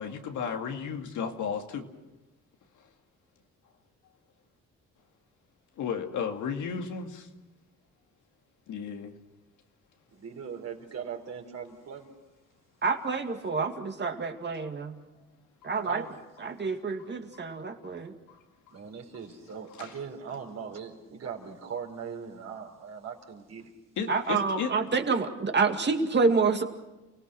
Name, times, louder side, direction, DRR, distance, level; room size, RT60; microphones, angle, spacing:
voice 1, 0.0-1.9 5.8-7.3 8.7-9.1 15.6-15.7 17.3-17.5 17.8-18.0 18.3-18.4 18.7-18.8 19.8-19.9 24.0-24.7, left 6 dB, 80° left, 4 dB, 2.3 m, -34 dB
voice 2, 10.1-12.1 15.7-16.1 18.7-23.7, right 7 dB, 55° right, 1 dB, 4.3 m, -40 dB
voice 3, 12.8-15.0 15.6-16.0 16.4-18.1 24.1-26.6, right 4 dB, 35° right, 5 dB, 2.3 m, -28 dB
29.5 x 18.0 x 6.3 m, 1.1 s
cardioid pair, 90°, 30 cm